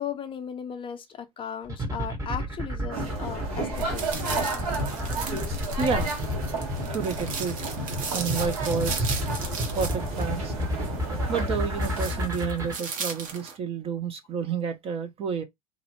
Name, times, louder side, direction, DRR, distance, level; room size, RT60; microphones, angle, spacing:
voice 1, 0.0-4.2, left 8 dB, 30° left, 0.5 m, -36 dB
sound 1, 1.7-12.7, equal, 15° right, 0.8 m, -31 dB
sound 2, 2.9-12.3, right 2 dB, 80° right, 1.2 m, -32 dB
sound 3, 3.7-13.6, right 5 dB, 50° right, 0.9 m, -37 dB
voice 2, 5.8-6.1 6.9-7.6 8.1-9.1 9.7-10.5 11.3-15.4, right 6 dB, 30° right, 0.5 m, -30 dB
2.4 x 2.0 x 2.9 m
hypercardioid pair, 85°, 18 cm